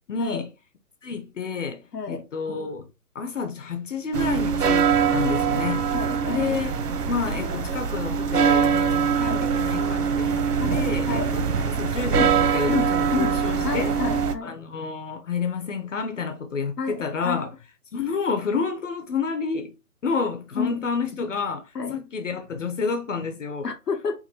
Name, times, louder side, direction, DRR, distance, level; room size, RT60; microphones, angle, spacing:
voice 1, 0.1-0.5 1.0-2.9 3.1-5.9 6.3-14.0 14.4-17.6 17.9-19.7 20.0-23.7, left 5 dB, 55° left, 0.7 m, -30 dB
voice 2, 1.9-2.2 5.9-6.4 9.1-9.4 10.6-11.3 12.1-12.3 12.7-14.5 16.8-17.5 20.6-20.8 21.7-22.0 22.6-22.7 23.6-24.2, left 5 dB, 85° left, 1.3 m, -30 dB
sound 1, 4.1-14.3, right 6 dB, 80° right, 0.9 m, -23 dB
3.9 x 2.5 x 4.3 m
hypercardioid pair, 160°, 46 cm